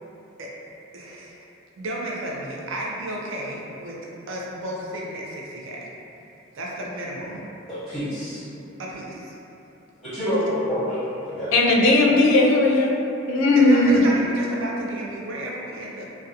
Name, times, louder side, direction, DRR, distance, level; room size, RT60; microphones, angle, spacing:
voice 1, 0.9-1.3 1.8-4.0 4.3-5.9 6.5-7.5 8.8-9.3 13.6-16.0, right 1 dB, 85° right, -3 dB, 0.5 m, -32 dB
voice 2, 7.7-8.4 10.0-11.6, equal, ahead, -15 dB, 0.7 m, -27 dB
voice 3, 11.5-12.9 13.3-14.0, left 2 dB, 80° left, -1 dB, 0.3 m, -17 dB
2.4 x 2.2 x 2.7 m, 2.9 s
head